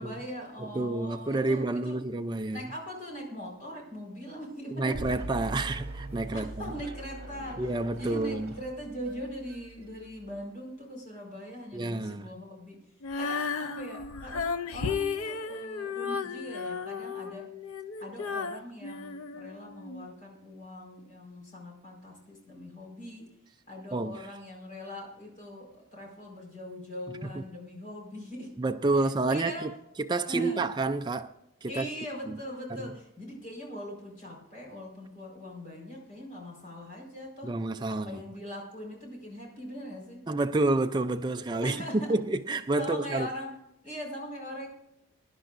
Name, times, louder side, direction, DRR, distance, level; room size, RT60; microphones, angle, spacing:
voice 1, 0.0-2.1 2.5-5.3 6.3-12.8 13.2-17.5 18.0-23.3 23.7-28.6 28.9-29.8 30.3-30.7 31.7-37.6 37.9-40.3 41.6-42.2 42.8-43.6 43.8-44.7, equal, 35° left, 4.5 m, -41 dB
voice 2, 0.6-2.6 4.8-6.5 7.6-8.5 11.7-12.3 23.9-24.3 27.2-27.4 28.6-29.7 30.0-31.3 31.6-31.9 32.3-32.4 32.7-32.9 37.4-38.2 40.3-43.3, right 2 dB, 20° right, 0.4 m, -29 dB
sound 1, 4.9-10.4, right 1 dB, 45° right, 3.7 m, -42 dB
Female singing, 13.0-20.1, left 5 dB, 75° left, 0.6 m, -34 dB
22.0 x 10.5 x 2.5 m
head